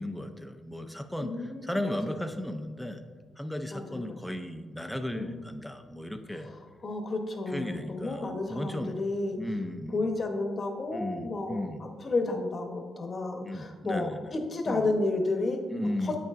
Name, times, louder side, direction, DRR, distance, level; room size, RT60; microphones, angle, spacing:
voice 1, 0.0-3.0 3.4-6.5 7.5-9.0 9.4-10.0 10.9-11.8 13.4-14.2 14.7-14.9 15.7-16.2, left 1 dB, 5° left, 7 dB, 0.5 m, -35 dB
voice 2, 1.2-2.3 3.7-4.2 5.1-5.5 6.3-9.4 9.9-15.6 16.0-16.2, left 2 dB, 40° left, 4 dB, 1.0 m, -32 dB
8.5 x 6.5 x 2.5 m, 1.4 s
cardioid pair, 100°, 0 cm